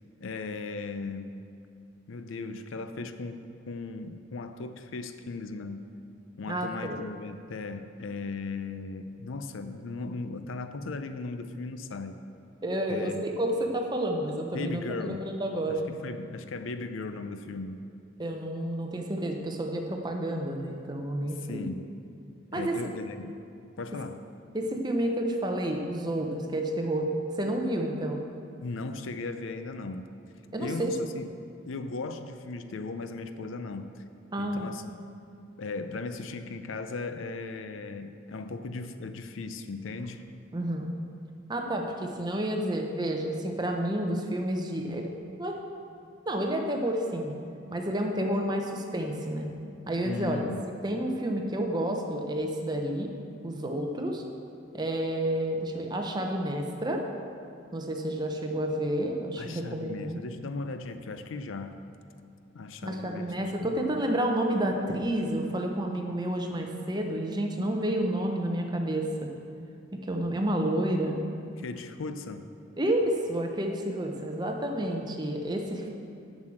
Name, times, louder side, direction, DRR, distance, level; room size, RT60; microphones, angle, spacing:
voice 1, 0.2-1.4 2.1-5.9 6.4-12.2 12.9-13.2 14.5-15.3 15.7-17.9 21.3-21.9 22.5-23.4 23.8-24.2 28.6-30.1 30.6-31.3 31.7-34.0 34.4-34.8 35.6-40.2 50.0-50.7 59.4-61.8 62.5-63.5 71.6-72.4, left 3 dB, 75° left, 9 dB, 0.5 m, -37 dB
voice 2, 6.5-7.0 12.6-15.8 18.2-21.7 22.5-22.8 24.5-27.1 27.4-28.2 30.5-31.1 34.3-34.7 40.5-40.9 41.5-45.1 45.4-45.6 46.3-47.4 47.7-49.5 49.9-50.4 50.8-53.1 53.4-54.2 54.7-57.0 57.7-60.2 62.8-69.3 69.9-71.2 72.8-75.9, right 1 dB, 20° right, 2 dB, 0.7 m, -30 dB
7.3 x 6.2 x 7.6 m, 2.5 s
head